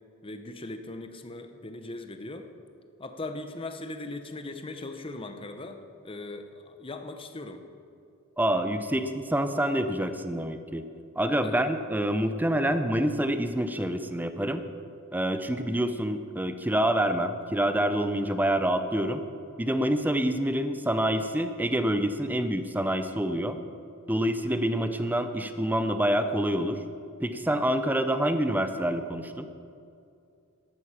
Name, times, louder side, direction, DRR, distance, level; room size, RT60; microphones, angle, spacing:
voice 1, 0.2-2.5 3.0-7.6 11.4-11.6, left 2 dB, 25° left, 7 dB, 0.8 m, -39 dB
voice 2, 8.4-10.9 11.2-14.6 15.1-19.2 19.6-23.6 24.1-26.8 27.2-29.5, right 1 dB, 10° right, 9 dB, 0.6 m, -27 dB
13.5 x 11.5 x 5.8 m, 2.5 s
head